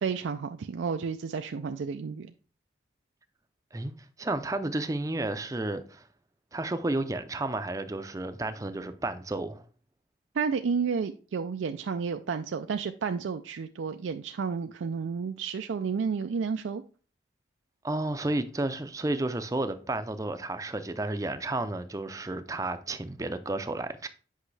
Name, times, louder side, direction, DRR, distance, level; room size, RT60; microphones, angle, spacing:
voice 1, 0.0-2.3 10.3-16.8, right 5 dB, 90° right, 0.4 m, -31 dB
voice 2, 4.2-6.0 6.5-9.6 17.8-24.1, right 2 dB, 20° right, 0.5 m, -32 dB
8.3 x 5.4 x 3.3 m
head